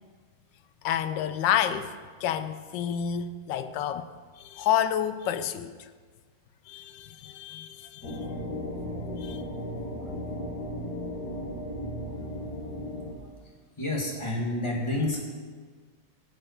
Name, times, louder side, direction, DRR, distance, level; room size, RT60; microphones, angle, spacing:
voice 1, 0.8-1.9 2.2-4.1 4.4-5.9 6.7-8.2 9.2-9.4, left 9 dB, 70° left, 11 dB, 1.3 m, -29 dB
sound 1, 8.0-13.1, left 1 dB, 50° left, 2.1 m, -35 dB
voice 2, 12.1-13.3 13.8-15.2, left 1 dB, 15° left, -2 dB, 2.0 m, -31 dB
12.0 x 8.0 x 6.6 m, 1.5 s
omnidirectional pair, 2.2 m